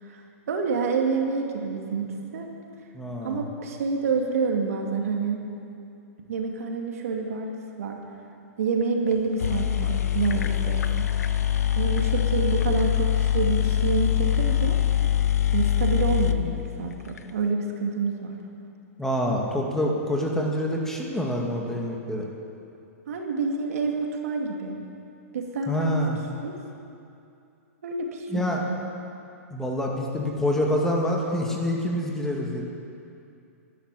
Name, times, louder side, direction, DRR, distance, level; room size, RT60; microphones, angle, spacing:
voice 1, 0.0-2.5 3.2-5.4 6.3-8.0 8.6-11.0 11.7-14.8 15.5-18.4 23.1-24.8 25.3-26.0 26.4-26.6 27.8-28.8, right 4 dB, 70° right, 2 dB, 2.5 m, -28 dB
voice 2, 2.9-3.5 19.0-22.3 25.7-26.2 28.3-28.6 29.5-32.6, left 1 dB, 5° left, -1 dB, 2.2 m, -26 dB
sound 1, 9.1-9.2 9.4-17.2, left 10 dB, 80° left, 0.9 m, -24 dB
13.0 x 12.0 x 9.2 m, 2.6 s
hypercardioid pair, 130°, 8 cm